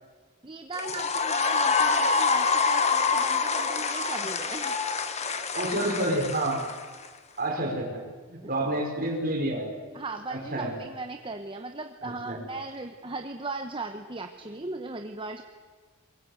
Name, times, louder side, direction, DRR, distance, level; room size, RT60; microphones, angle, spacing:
voice 1, 0.4-4.7 8.4-8.5 9.9-15.4, right 3 dB, 25° right, 6 dB, 1.0 m, -38 dB
sound 1, 0.7-7.1, left 4 dB, 30° left, 1.4 m, -26 dB
voice 2, 5.5-6.7 7.4-8.0 8.3-9.7 10.3-10.7 12.0-12.4, right 1 dB, 45° right, 2 dB, 5.2 m, -29 dB
23.0 x 22.0 x 8.1 m, 1.4 s
head